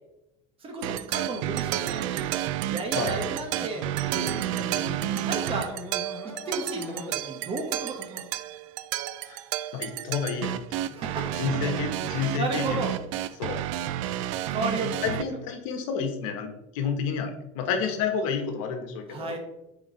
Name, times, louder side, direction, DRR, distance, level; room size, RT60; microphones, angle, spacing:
voice 1, 0.6-2.3 2.7-5.7 6.2-8.2 10.9-11.4 11.6-11.8 12.1-12.9 14.5-15.1 19.1-19.4, right 2 dB, 35° right, 3 dB, 1.5 m, -34 dB
sound 1, 0.8-15.2, right 12 dB, 75° right, 0.4 m, -31 dB
sound 2, 3.6-8.7, left 2 dB, 15° left, 1.1 m, -43 dB
voice 2, 9.7-10.8 11.2-12.8 13.4-13.6 15.0-19.4, left 6 dB, 75° left, 5 dB, 1.2 m, -30 dB
6.4 x 4.9 x 3.2 m, 0.87 s
supercardioid pair, 110°, 17 cm